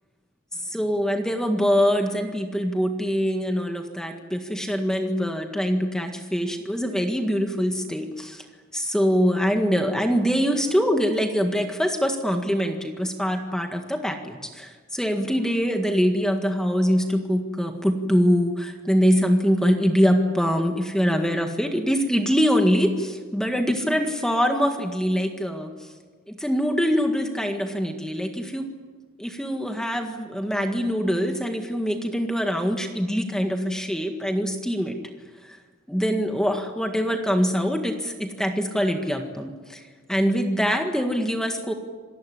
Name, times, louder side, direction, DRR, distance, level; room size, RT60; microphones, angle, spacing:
voice 1, 0.5-8.4 8.7-25.9 26.3-28.7 29.2-35.0 35.4-35.6 35.9-39.8 40.1-41.7, equal, 5° left, 4 dB, 1.7 m, -24 dB
27.0 x 18.5 x 10.0 m, 1.5 s
head